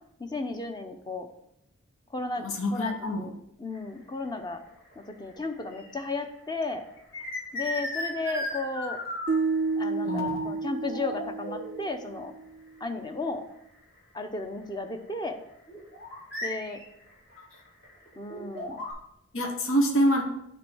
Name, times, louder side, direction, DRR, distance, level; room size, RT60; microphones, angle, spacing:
voice 1, 0.2-1.3 2.1-2.5 2.7-3.3 3.6-4.6 5.2-6.8 7.5-9.0 9.8-12.3 12.8-13.4 14.1-15.4 16.4-16.8 18.2-18.8, left 3 dB, 20° left, 6 dB, 0.7 m, -34 dB
voice 2, 2.4-3.3 10.0-10.5 19.3-20.2, equal, 75° left, 2 dB, 1.2 m, -26 dB
sound 1, 3.8-4.0 4.7-6.2 6.5-9.6 10.1-10.4 10.7-11.9 12.8-12.9 13.3-13.4 14.0-14.1 15.7-18.9, left 1 dB, 50° left, 3.0 m, -36 dB
sound 2, 9.3-12.4, right 4 dB, 35° right, 0.3 m, -30 dB
9.3 x 3.5 x 6.2 m, 0.79 s
head